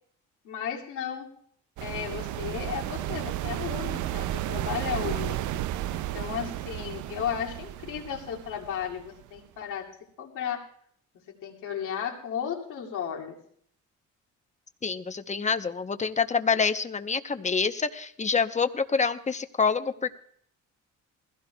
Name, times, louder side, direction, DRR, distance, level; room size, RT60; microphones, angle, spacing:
voice 1, 0.4-1.3 1.8-9.9 10.2-10.6 11.3-13.4, left 8 dB, 85° left, -1 dB, 2.4 m, -34 dB
sound 1, 1.8-9.4, right 13 dB, 75° right, 0.5 m, -33 dB
voice 2, 14.8-20.1, left 5 dB, 25° left, 9 dB, 0.8 m, -27 dB
21.0 x 16.0 x 2.3 m, 0.63 s
cardioid pair, 90°, 30 cm